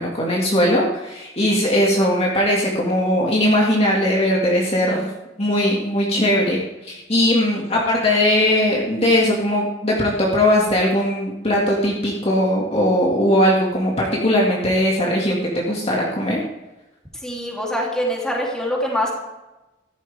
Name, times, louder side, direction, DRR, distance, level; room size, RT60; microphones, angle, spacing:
voice 1, 0.0-5.1 5.4-16.4, left 1 dB, 35° left, -3 dB, 2.1 m, -19 dB
voice 2, 17.2-19.1, equal, 5° left, -3 dB, 3.1 m, -24 dB
14.5 x 12.5 x 3.5 m, 1.0 s
head